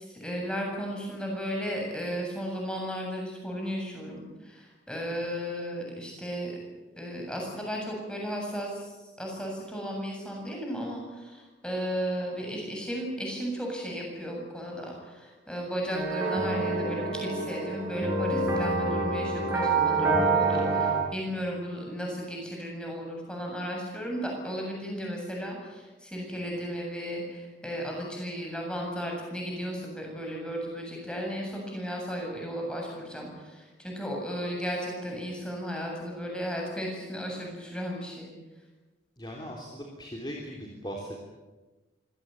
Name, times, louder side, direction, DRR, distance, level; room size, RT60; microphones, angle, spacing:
voice 1, 0.2-6.5 7.0-8.7 9.2-33.3 33.8-38.3, equal, 5° left, 0 dB, 7.7 m, -34 dB
sound 1, 15.9-20.9, right 3 dB, 10° right, 7.3 m, -27 dB
voice 2, 20.6-21.1 39.2-41.2, equal, 25° left, 0 dB, 3.4 m, -39 dB
25.5 x 17.5 x 9.4 m, 1.2 s
head